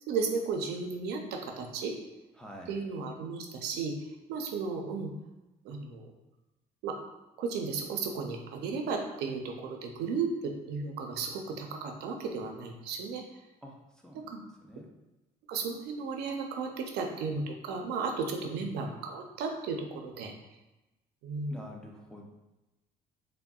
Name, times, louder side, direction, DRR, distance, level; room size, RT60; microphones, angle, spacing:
voice 1, 0.1-2.0 2.7-3.9 4.3-5.1 5.6-6.1 6.8-7.0 7.4-13.2 14.1-14.4 15.5-20.3 21.2-21.5, right 4 dB, 80° right, 3 dB, 0.5 m, -34 dB
voice 2, 2.4-2.8 13.6-14.3 14.6-14.9 18.6-18.7 21.5-22.3, equal, 5° left, -1 dB, 0.4 m, -47 dB
3.5 x 2.0 x 2.3 m, 1.0 s
cardioid pair, 110°, 17 cm